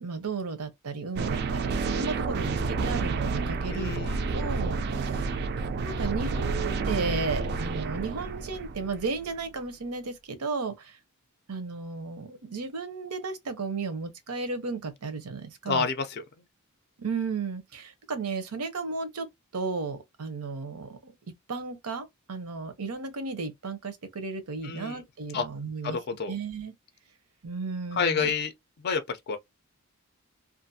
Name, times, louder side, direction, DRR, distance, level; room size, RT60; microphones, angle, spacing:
voice 1, 0.0-4.0 4.3-5.3 5.8-11.0 11.5-15.9 17.0-19.3 19.5-21.1 21.5-26.0 26.3-26.7 27.4-28.3, right 4 dB, 85° right, 0.7 m, -34 dB
sound 1, 1.2-9.3, right 4 dB, 45° right, 0.3 m, -30 dB
voice 2, 3.7-4.2 15.7-16.2 24.6-25.0 25.3-25.4 25.8-26.3 27.9-28.5 28.8-29.4, left 5 dB, 45° left, 0.4 m, -29 dB
2.5 x 2.4 x 2.6 m
head